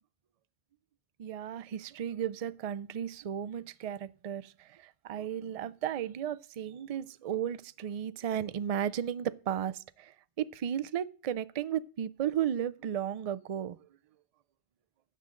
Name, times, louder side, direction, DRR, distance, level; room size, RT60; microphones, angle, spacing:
voice 1, 1.2-4.5 5.0-10.1 10.4-13.8, right 9 dB, 55° right, 0.4 m, -34 dB
12.0 x 7.7 x 3.7 m
omnidirectional pair, 1.1 m